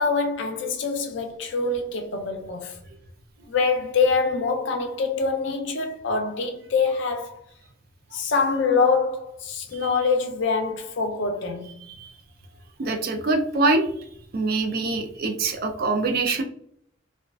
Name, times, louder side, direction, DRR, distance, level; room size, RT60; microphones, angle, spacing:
voice 1, 0.0-2.8 3.5-7.3 8.1-11.8, left 4 dB, 65° left, 0.4 m, -25 dB
voice 2, 12.8-14.1 14.3-16.4, right 3 dB, 50° right, 0.3 m, -24 dB
2.4 x 2.3 x 2.2 m
head